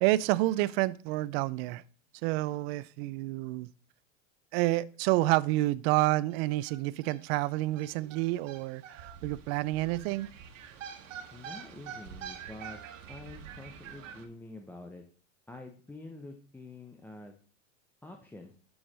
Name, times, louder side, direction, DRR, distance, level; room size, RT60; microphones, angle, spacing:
voice 1, 0.0-1.8 2.2-3.7 4.5-10.3, right 18 dB, 55° right, 0.5 m, -29 dB
sound 1, 5.6-5.7 5.9-6.0 6.3-14.3, right 7 dB, 80° right, 1.5 m, -46 dB
voice 2, 11.3-12.8 13.1-15.0 15.5-17.3 18.0-18.5, left 2 dB, 5° left, 0.6 m, -47 dB
6.4 x 6.1 x 5.2 m
supercardioid pair, 125°, 38 cm